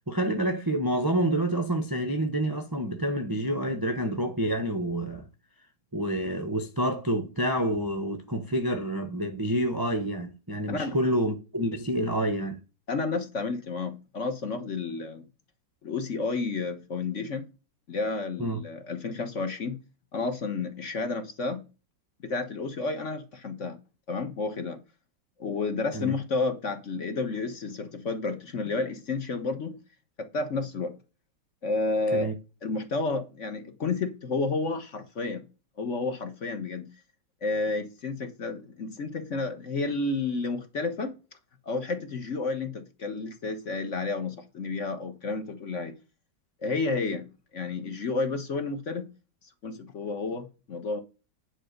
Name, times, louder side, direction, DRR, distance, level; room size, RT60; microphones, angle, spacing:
voice 1, 0.1-5.2 5.9-12.6 18.4-18.6 25.9-26.1 32.1-32.3, right 1 dB, 20° right, 0.6 m, -28 dB
voice 2, 12.9-15.2 15.8-17.5 17.9-19.8 20.1-21.6 22.2-23.7 24.1-24.8 25.4-29.8 30.2-31.0 31.6-32.3 32.6-35.4 35.8-36.9 37.4-41.1 41.6-45.9 46.6-49.1 49.6-51.0, left 3 dB, 45° left, 1.5 m, -31 dB
10.0 x 4.2 x 6.6 m
omnidirectional pair, 2.0 m